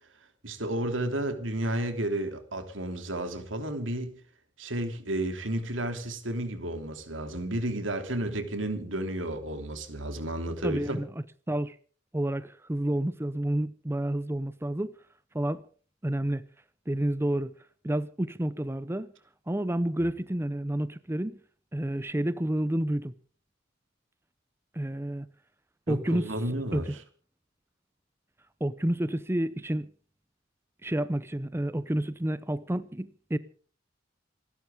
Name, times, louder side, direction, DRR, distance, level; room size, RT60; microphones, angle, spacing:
voice 1, 0.4-4.1 4.6-11.0 25.9-27.0, right 1 dB, 80° right, 3.3 m, -32 dB
voice 2, 10.6-11.1 11.5-11.8 12.1-14.9 15.3-15.6 16.0-16.4 16.9-17.5 17.8-19.1 19.5-21.4 21.7-23.1 24.7-25.3 25.9-26.3 26.7-27.0 28.6-29.9 30.8-33.4, right 1 dB, 15° right, 0.7 m, -29 dB
28.0 x 12.0 x 3.8 m
head